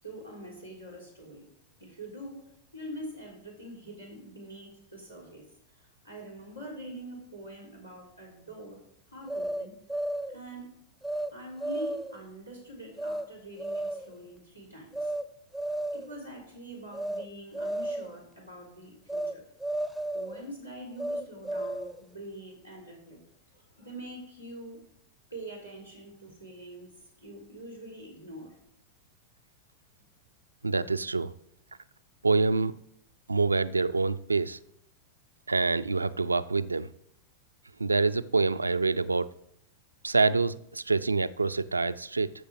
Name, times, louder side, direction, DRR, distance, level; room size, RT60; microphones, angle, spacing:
voice 1, 0.0-1.5 1.8-2.4 2.7-8.8 9.1-9.7 10.3-10.7 11.3-15.1 15.9-19.4 20.1-23.2 23.5-24.8 25.3-26.9 27.2-28.5, right 1 dB, 90° left, 4.2 m, -44 dB
sound 1, 9.3-10.4 11.0-11.3 11.6-12.2 13.0-13.2 13.6-14.1 14.9-15.2 15.5-16.2 16.9-17.2 17.5-18.2 19.1-19.3 19.6-20.4 21.0-22.0, right 1 dB, 5° left, 0.7 m, -33 dB
voice 2, 30.6-31.3 32.2-32.8 33.3-34.6 35.5-36.9 37.8-39.3 40.0-42.3, right 3 dB, 80° right, 0.4 m, -26 dB
14.0 x 6.7 x 4.8 m
figure-of-eight pair, 90°, 0 cm